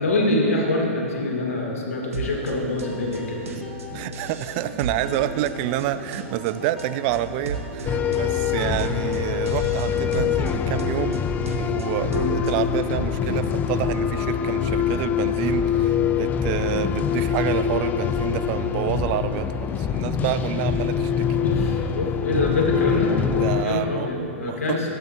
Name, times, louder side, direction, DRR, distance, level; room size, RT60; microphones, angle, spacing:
voice 1, 0.0-3.4 12.1-12.3 21.4-23.2 23.6-24.9, left 2 dB, 75° left, -1 dB, 1.8 m, -25 dB
sound 1, 2.1-12.8, right 2 dB, 75° right, 1.1 m, -35 dB
sound 2, 2.2-9.5, equal, ahead, 1.9 m, -42 dB
voice 2, 3.9-21.3 23.4-24.1 24.4-24.9, right 13 dB, 40° right, 13 dB, 0.4 m, -28 dB
sound 3, 7.8-23.6, left 7 dB, 20° left, 0.4 m, -24 dB
15.5 x 8.3 x 2.9 m, 2.9 s
hypercardioid pair, 110°, 8 cm